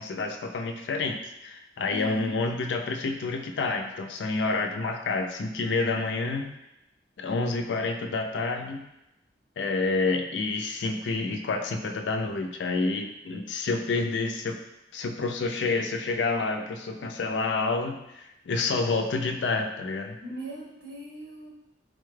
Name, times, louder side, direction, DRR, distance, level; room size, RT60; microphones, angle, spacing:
voice 1, 0.0-6.5 7.2-8.8 9.6-14.6 14.9-20.2, left 3 dB, 85° left, 4 dB, 0.4 m, -28 dB
voice 2, 1.9-2.3 20.2-21.5, equal, 85° right, -5 dB, 1.2 m, -39 dB
4.0 x 2.2 x 3.2 m, 0.88 s
head